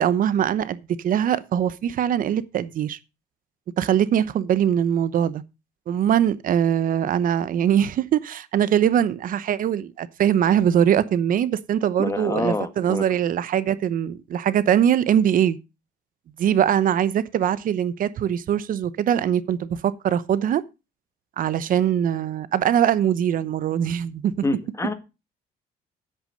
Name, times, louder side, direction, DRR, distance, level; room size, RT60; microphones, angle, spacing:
voice 1, 0.0-3.0 3.8-5.4 5.9-15.6 16.4-20.6 21.4-24.3, right 9 dB, 55° right, 0.9 m, -22 dB
voice 2, 12.0-13.0 24.4-24.9, left 2 dB, 15° left, 1.7 m, -26 dB
9.9 x 8.4 x 5.2 m
cardioid pair, 110°, 17 cm